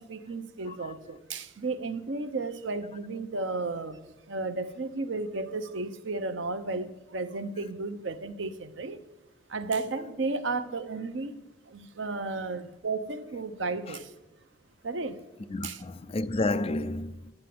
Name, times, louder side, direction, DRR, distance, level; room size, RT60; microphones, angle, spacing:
voice 1, 0.0-9.0 9.5-11.4 11.7-14.1 14.8-15.2 15.6-15.8, right 3 dB, 90° right, 0.8 m, -33 dB
voice 2, 15.5-17.3, left 2 dB, 30° left, 0.4 m, -31 dB
9.8 x 6.8 x 7.7 m
head